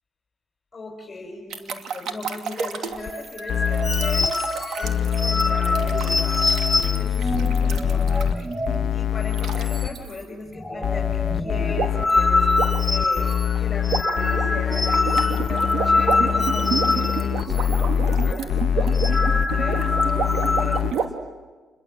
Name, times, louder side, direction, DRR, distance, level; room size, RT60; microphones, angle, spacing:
voice 1, 0.7-4.3 4.8-6.4 7.0-8.5 8.9-12.5 12.8-21.1, left 3 dB, 25° left, -2 dB, 6.3 m, -38 dB
sound 1, 1.5-8.5 9.3-9.6 9.9-10.1 11.7-12.1 12.4-21.1, right 6 dB, 70° right, 2.6 m, -30 dB
sound 2, 3.0-8.9 9.2-9.4 9.6-10.2 10.5-17.8 18.1-18.3 18.8-20.8, left 2 dB, ahead, 1.6 m, -25 dB
sound 3, 3.1-3.2 3.5-4.3 4.8-8.3 8.7-9.9 10.8-20.9, left 9 dB, 65° left, 0.9 m, -24 dB
29.0 x 22.5 x 7.7 m, 1.3 s
cardioid pair, 90°, 0 cm